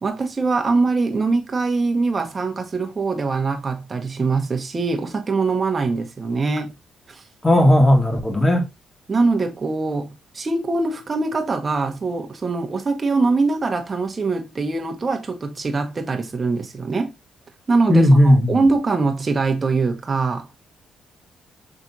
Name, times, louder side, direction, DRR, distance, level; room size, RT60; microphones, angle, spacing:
voice 1, 0.0-6.7 7.1-7.2 9.1-17.1 17.7-20.5, right 3 dB, 30° right, 1.0 m, -23 dB
voice 2, 7.4-8.6 17.9-18.5, left 1 dB, 15° left, 1.6 m, -14 dB
5.9 x 3.4 x 2.7 m
cardioid pair, 90°, 0 cm